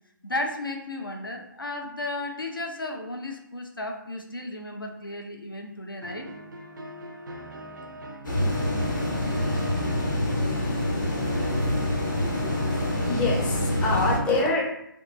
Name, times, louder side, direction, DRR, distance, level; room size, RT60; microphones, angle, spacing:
voice 1, 0.2-6.3, left 2 dB, 90° left, 3 dB, 0.5 m, -34 dB
sound 1, 6.0-14.0, right 1 dB, 65° right, 0.4 m, -40 dB
sound 2, 8.2-14.2, left 1 dB, 65° left, 0.8 m, -26 dB
voice 2, 13.0-14.7, left 2 dB, 10° left, -4 dB, 0.4 m, -25 dB
2.6 x 2.3 x 2.5 m, 0.77 s
figure-of-eight pair, 140°, 11 cm